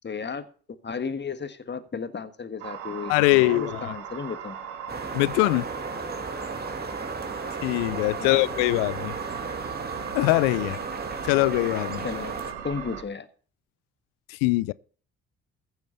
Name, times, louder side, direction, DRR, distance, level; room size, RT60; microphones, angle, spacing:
voice 1, 0.0-0.5 0.8-4.6 8.2-8.5 12.0-12.3 12.6-13.3, left 5 dB, 30° left, 1.5 m, -34 dB
sound 1, 2.6-13.0, right 9 dB, 85° right, 1.5 m, -38 dB
voice 2, 3.1-3.9 5.1-5.7 7.6-9.1 10.1-10.8 11.2-12.1 14.3-14.7, left 21 dB, 75° left, 0.5 m, -22 dB
sound 2, 4.9-12.5, right 3 dB, 30° right, 2.3 m, -35 dB
15.0 x 7.2 x 5.6 m
hypercardioid pair, 45°, 34 cm